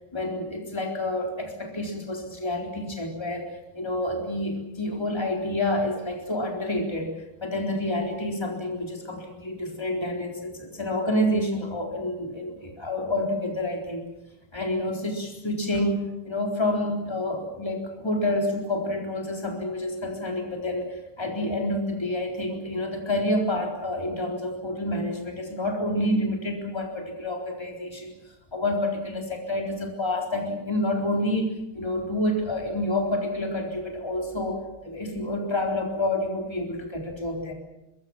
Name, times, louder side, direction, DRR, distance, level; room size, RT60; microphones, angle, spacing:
voice 1, 0.1-7.1 7.4-14.1 14.5-28.1 28.5-31.5 31.7-37.5, left 1 dB, 10° left, 1 dB, 4.0 m, -28 dB
24.5 x 21.5 x 7.4 m, 0.93 s
omnidirectional pair, 2.3 m